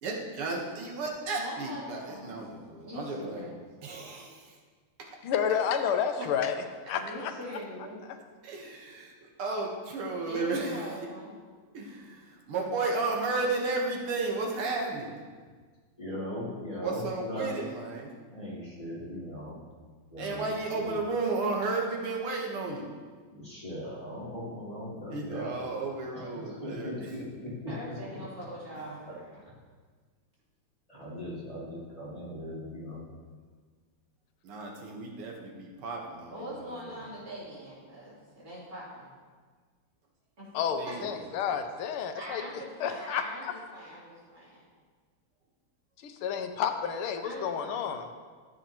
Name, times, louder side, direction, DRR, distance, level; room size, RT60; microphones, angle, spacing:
voice 1, 0.0-3.5 3.8-4.5 5.0-5.1 8.4-10.9 11.7-15.1 16.8-18.1 20.2-22.9 25.1-26.9 34.4-36.9 40.7-41.2, right 3 dB, 90° right, 0 dB, 2.2 m, -33 dB
voice 2, 1.3-2.3 2.8-3.5 6.2-6.4 6.9-8.0 10.2-11.3 27.7-29.4 36.3-39.1 40.4-40.5 42.2-44.6 47.2-48.0, equal, 40° right, -8 dB, 3.6 m, -42 dB
voice 3, 5.2-6.5 6.9-7.3 40.5-42.4 42.8-43.5 46.0-48.0, left 7 dB, 85° left, 6 dB, 1.6 m, -30 dB
voice 4, 16.0-17.5 18.3-19.7 20.1-21.0 23.3-25.7 26.1-28.0 29.1-29.2 29.4-29.5 30.9-33.1, left 1 dB, 15° left, -8 dB, 2.6 m, -39 dB
14.0 x 7.8 x 2.9 m, 1.5 s
omnidirectional pair, 2.4 m